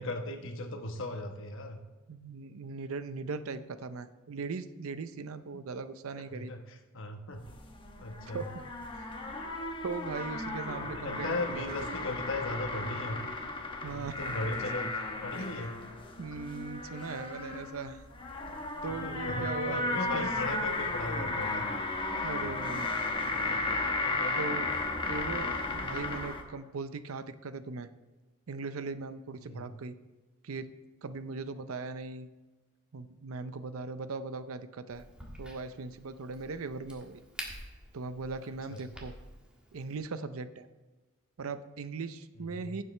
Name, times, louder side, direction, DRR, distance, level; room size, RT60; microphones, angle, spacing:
voice 1, 0.0-1.8 6.2-7.4 8.0-8.5 10.8-13.2 13.9-14.9 15.2-15.7 18.5-21.6 23.1-23.7 24.0-24.5 29.4-29.8 38.7-38.9 42.4-42.8, left 2 dB, 60° left, 4 dB, 1.1 m, -38 dB
voice 2, 2.1-6.5 8.3-8.6 8.9-9.2 9.8-12.1 13.8-14.2 15.4-15.5 16.2-18.0 18.8-20.3 22.2-22.9 24.4-24.7 25.1-27.9 28.5-30.0 30.4-30.7 31.0-32.3 32.9-35.0 35.4-37.2 37.9-39.1 39.7-40.7 41.4-42.8, right 4 dB, 70° right, 12 dB, 0.6 m, -39 dB
sound 1, 7.4-26.4, left 2 dB, 25° left, 1.0 m, -35 dB
Crack, 34.9-40.0, equal, 5° right, 1.5 m, -48 dB
15.0 x 7.5 x 3.2 m, 1.2 s
head